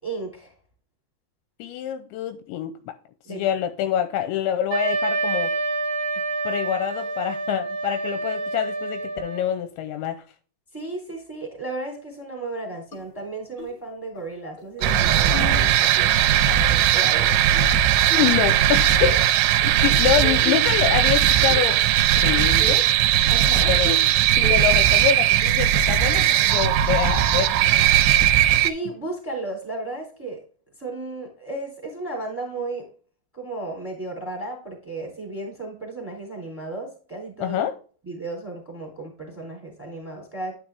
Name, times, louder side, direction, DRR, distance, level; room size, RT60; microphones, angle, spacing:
voice 1, 0.0-0.5 3.2-3.6 10.7-17.4 23.3-23.7 28.5-30.4 30.8-32.9 33.3-37.6 38.0-40.5, right 2 dB, 5° right, 2.5 m, -34 dB
voice 2, 1.6-2.8 3.3-5.5 6.4-10.2 18.1-19.3 19.6-21.8 22.2-22.9 23.7-24.0 24.4-27.9 37.4-37.8, left 10 dB, 80° left, 2.8 m, -26 dB
Wind instrument woodwind instrument, 4.7-9.6, right 3 dB, 65° right, 2.1 m, -27 dB
sound 1, 12.9-13.0 13.6-13.8 14.1-14.2 14.6-14.9 15.3-16.1 17.1-17.7 18.1-18.4 19.0-19.2 20.2-20.8 21.1-21.8 22.2-22.3 22.6-22.8 23.2-23.3 23.8-24.1 24.4-24.9, left 7 dB, 50° left, 1.8 m, -34 dB
sound 2, 14.8-28.7, right 11 dB, 85° right, 2.9 m, -18 dB
10.0 x 5.9 x 3.4 m
omnidirectional pair, 5.5 m